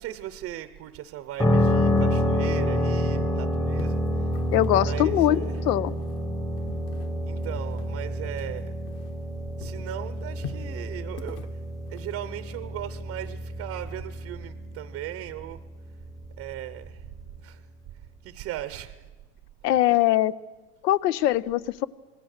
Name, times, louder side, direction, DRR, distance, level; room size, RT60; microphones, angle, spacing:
voice 1, 0.0-4.3 4.7-5.6 7.2-8.7 9.6-11.4 11.9-15.6 16.4-17.1 17.4-17.7 18.2-19.0 19.6-20.0, right 13 dB, 30° right, 13 dB, 0.7 m, -38 dB
sound 1, 1.4-17.2, equal, 5° left, 0.9 m, -28 dB
sound 2, 3.7-9.3 9.6-12.5, left 8 dB, 30° left, 1.1 m, -44 dB
voice 2, 4.5-5.9 19.6-20.3 20.8-21.9, left 13 dB, 90° left, 18 dB, 0.9 m, -22 dB
26.5 x 20.5 x 6.6 m, 1.2 s
supercardioid pair, 155°, 47 cm